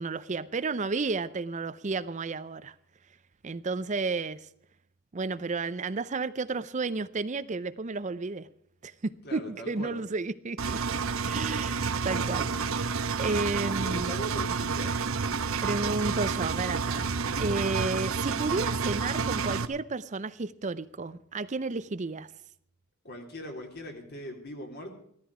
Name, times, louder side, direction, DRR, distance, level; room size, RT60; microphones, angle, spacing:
voice 1, 0.0-2.7 3.4-4.5 5.1-8.5 8.8-10.8 11.2-14.1 15.6-22.3, right 3 dB, 35° right, 0.5 m, -32 dB
voice 2, 9.2-10.0 13.8-15.0 23.0-24.9, equal, 50° left, 3.5 m, -40 dB
Engine, 10.6-19.7, right 5 dB, 80° right, 0.9 m, -29 dB
16.5 x 13.5 x 4.9 m
head